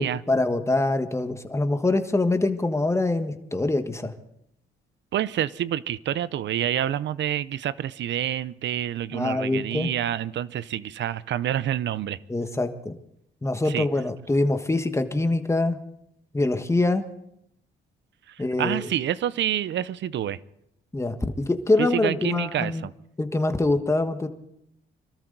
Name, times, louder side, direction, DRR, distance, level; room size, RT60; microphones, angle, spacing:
voice 1, 0.0-4.1 9.1-9.9 12.3-13.0 13.4-15.8 16.3-17.0 18.4-18.8 20.9-22.9 23.2-24.3, left 2 dB, 15° left, 1.4 m, -24 dB
voice 2, 5.1-12.2 13.7-13.9 18.6-20.4 21.8-22.9, right 11 dB, 65° right, 0.7 m, -27 dB
25.0 x 13.5 x 4.0 m
cardioid pair, 90°, 20 cm